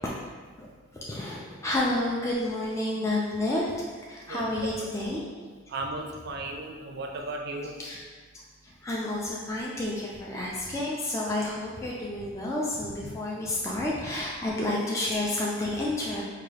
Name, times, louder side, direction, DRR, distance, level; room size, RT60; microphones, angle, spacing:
voice 1, 0.9-5.3 7.8-8.0 8.6-16.2, left 1 dB, 15° left, -5 dB, 0.3 m, -30 dB
voice 2, 5.7-7.7, right 2 dB, 50° right, 2 dB, 0.4 m, -35 dB
4.6 x 2.3 x 3.2 m, 1.5 s
head